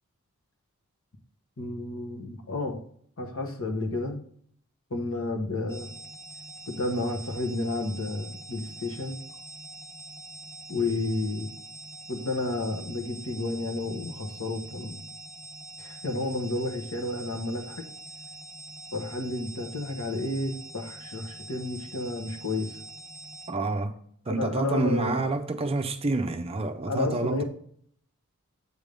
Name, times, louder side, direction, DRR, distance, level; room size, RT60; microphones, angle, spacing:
voice 1, 1.6-2.8 3.2-4.2 4.9-5.9 6.7-9.2 10.7-11.5 12.1-15.1 15.8-17.8 18.9-22.8 24.3-25.2 26.8-27.4, left 2 dB, 65° left, 1.2 m, -31 dB
sound 1, 5.7-23.5, right 2 dB, 15° left, 0.9 m, -44 dB
voice 2, 23.5-23.9 24.3-27.4, right 3 dB, 25° right, 0.5 m, -28 dB
8.2 x 3.5 x 5.3 m
head